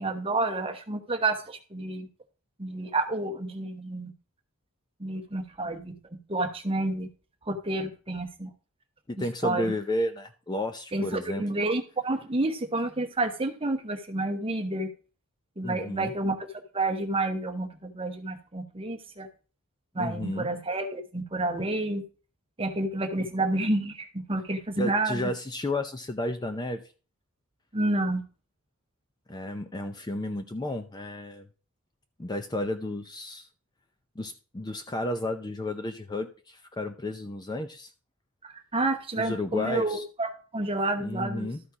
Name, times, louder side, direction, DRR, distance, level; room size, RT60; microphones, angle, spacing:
voice 1, 0.0-2.1 2.6-4.1 5.0-5.9 6.3-7.1 7.5-8.5 9.4-9.7 10.9-14.9 15.6-16.5 16.7-19.3 19.9-22.0 22.6-25.2 27.7-28.2 38.4-41.5, right 2 dB, 25° right, 6 dB, 1.0 m, -29 dB
voice 2, 9.1-11.4 15.6-16.1 20.0-20.5 23.2-23.3 24.8-26.8 29.3-31.5 32.2-33.5 34.2-37.9 39.2-40.0 41.0-41.6, left 1 dB, 20° left, 7 dB, 0.5 m, -32 dB
12.5 x 4.3 x 4.8 m, 0.36 s
head